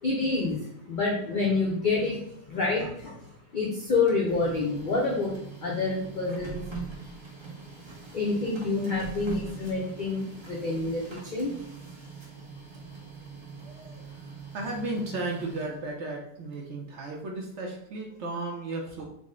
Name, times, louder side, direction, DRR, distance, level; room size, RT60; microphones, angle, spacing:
voice 1, 0.0-6.6 8.1-11.5, left 3 dB, 85° left, -3 dB, 0.4 m, -28 dB
Printer, 3.9-16.0, right 4 dB, 35° right, 0.4 m, -42 dB
voice 2, 13.6-19.0, right 2 dB, 65° right, 0 dB, 0.7 m, -35 dB
3.8 x 2.0 x 3.6 m, 0.74 s
omnidirectional pair, 1.6 m